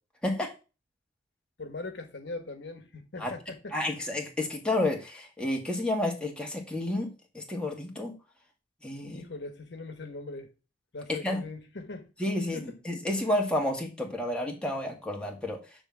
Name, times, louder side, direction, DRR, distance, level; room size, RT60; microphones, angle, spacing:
voice 1, 1.6-3.8 9.0-10.5 10.9-12.1 12.5-12.7, left 2 dB, 65° left, 1.2 m, -40 dB
voice 2, 3.7-8.2 8.8-9.2 11.1-11.4 12.2-15.6, left 1 dB, 5° left, 1.9 m, -30 dB
10.0 x 3.5 x 7.1 m
head